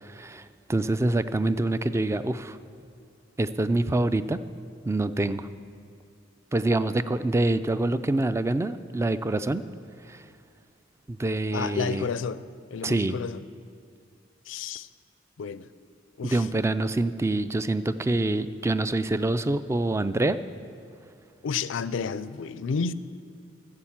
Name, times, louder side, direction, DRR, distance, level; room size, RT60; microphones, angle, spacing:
voice 1, 0.0-2.6 3.4-4.4 4.9-5.5 6.5-9.6 10.1-10.2 11.1-12.1 12.8-13.2 16.2-20.4, right 2 dB, 15° right, 13 dB, 0.3 m, -26 dB
voice 2, 11.5-12.4 12.7-13.4 14.5-14.9 15.4-15.7 16.2-16.5 21.4-22.9, left 5 dB, 75° left, 15 dB, 0.4 m, -31 dB
14.5 x 7.8 x 7.3 m, 2.3 s
head